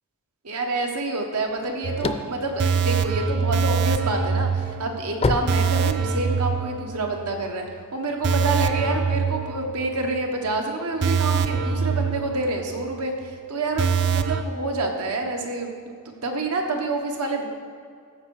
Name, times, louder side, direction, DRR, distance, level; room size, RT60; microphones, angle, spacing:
voice 1, 0.4-7.7 7.9-17.5, right 2 dB, 85° right, 2 dB, 1.3 m, -28 dB
sound 1, 1.5-3.7 4.2-6.4, left 3 dB, 25° left, 0.4 m, -27 dB
sound 2, 1.8-7.4 7.7-7.8 8.2-10.2 10.5-10.6 11.0-12.9 13.2-13.3 13.8-14.4, right 5 dB, 50° right, 0.5 m, -24 dB
14.0 x 5.5 x 4.8 m, 2.2 s
head